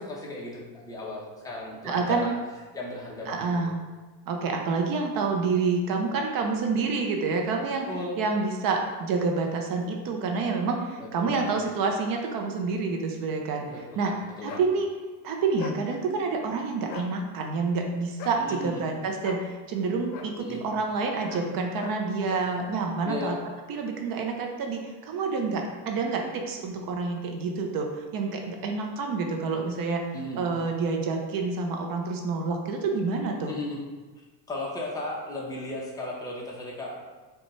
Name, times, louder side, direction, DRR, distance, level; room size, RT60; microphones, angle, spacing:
voice 1, 0.0-2.3 2.7-3.6 7.7-8.2 11.0-11.5 13.7-14.6 18.4-18.9 20.4-20.6 23.1-23.4 30.1-30.4 33.5-33.8 34.5-37.0, left 2 dB, 10° left, -4 dB, 0.7 m, -36 dB
voice 2, 1.8-2.3 3.3-3.8 4.3-7.9 8.2-13.7 14.0-14.2 14.4-14.9 15.2-23.4 23.7-30.0 30.4-33.5, right 4 dB, 50° right, 2 dB, 0.6 m, -28 dB
sound 1, 14.5-14.7 15.6-15.8 16.8-17.1 18.2-18.4 19.2-19.4 20.1-20.3 21.3-21.5 21.8-22.0 22.3-22.5, left 7 dB, 80° left, 0.6 m, -39 dB
5.2 x 2.3 x 3.1 m, 1.3 s
cardioid pair, 140°, 44 cm